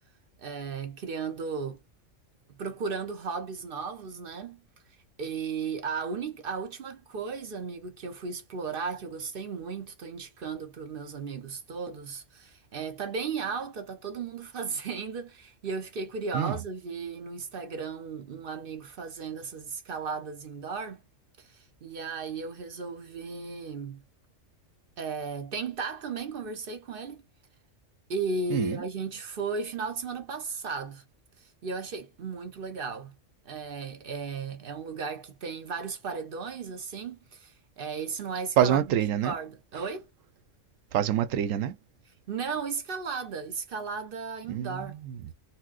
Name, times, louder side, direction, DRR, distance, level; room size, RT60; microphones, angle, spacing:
voice 1, 0.4-1.8 2.5-4.6 5.2-21.0 21.4-24.0 25.0-27.2 28.1-31.0 31.4-33.1 33.4-39.0 39.2-40.1 42.3-45.0, right 5 dB, 55° right, 0.8 m, -35 dB
voice 2, 28.5-28.8 38.6-39.3 40.9-41.8 44.5-45.3, right 10 dB, 85° right, 1.0 m, -26 dB
4.2 x 2.1 x 2.4 m
omnidirectional pair, 1.3 m